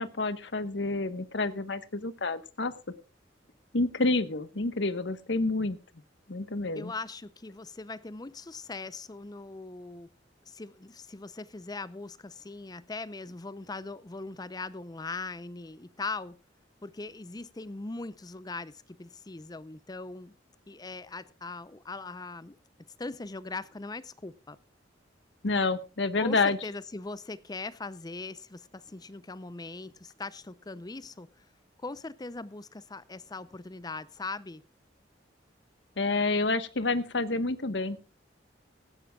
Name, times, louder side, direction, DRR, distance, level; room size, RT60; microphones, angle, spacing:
voice 1, 0.0-2.7 3.7-5.8 6.3-6.9 25.4-26.6 36.0-38.0, left 3 dB, 70° left, 12 dB, 1.2 m, -28 dB
voice 2, 6.7-10.1 10.5-16.4 16.8-20.3 20.7-22.6 23.0-24.6 26.2-31.3 31.8-34.6, left 3 dB, 20° left, 17 dB, 0.6 m, -40 dB
18.0 x 15.5 x 2.3 m, 0.32 s
head